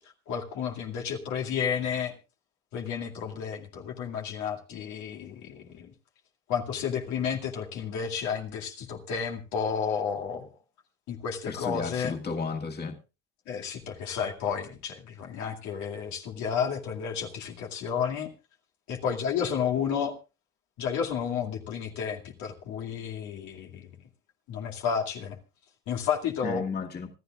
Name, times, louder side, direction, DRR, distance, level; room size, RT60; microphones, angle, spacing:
voice 1, 0.3-2.2 2.7-5.9 6.5-10.5 11.1-12.1 13.5-18.3 18.9-20.1 20.8-23.9 24.5-25.4 25.9-26.6, left 7 dB, 75° left, 2.3 m, -31 dB
voice 2, 11.5-13.0 26.4-27.1, left 5 dB, 35° left, 2.1 m, -33 dB
26.0 x 12.5 x 2.4 m
cardioid pair, 95°, 29 cm